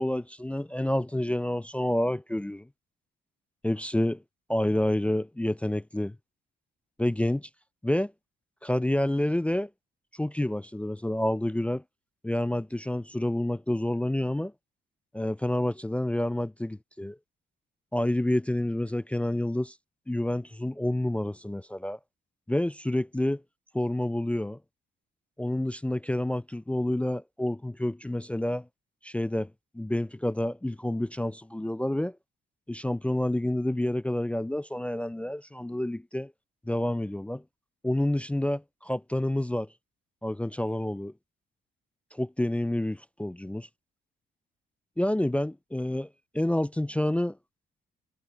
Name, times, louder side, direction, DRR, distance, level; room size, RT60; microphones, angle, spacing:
voice 1, 0.0-2.7 3.6-4.2 4.5-6.2 7.0-7.5 7.8-8.1 8.6-9.7 10.1-11.8 12.2-14.5 15.1-17.2 17.9-19.8 20.1-22.0 22.5-23.4 23.7-24.6 25.4-28.7 29.0-32.2 32.7-36.3 36.7-37.4 37.8-39.7 40.2-41.1 42.1-43.7 45.0-46.1 46.3-47.4, left 1 dB, 5° left, 0.4 m, -28 dB
cardioid pair, 90°, 20 cm